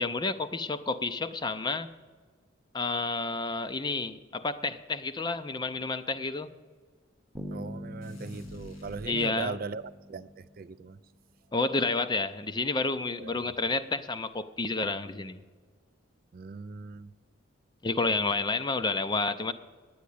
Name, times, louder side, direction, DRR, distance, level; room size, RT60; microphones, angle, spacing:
voice 1, 0.0-1.9 2.7-6.5 9.1-9.6 11.5-15.4 17.8-19.5, left 3 dB, 20° left, 11 dB, 0.5 m, -30 dB
Bass guitar, 7.3-11.1, equal, 5° right, 0.8 m, -43 dB
voice 2, 7.5-9.8 10.1-11.0 13.2-13.7 16.3-17.1, right 4 dB, 45° right, 14 dB, 0.4 m, -39 dB
sound 1, 8.0-9.8, left 1 dB, 90° left, 3.0 m, -49 dB
9.5 x 9.5 x 10.0 m, 1.5 s
head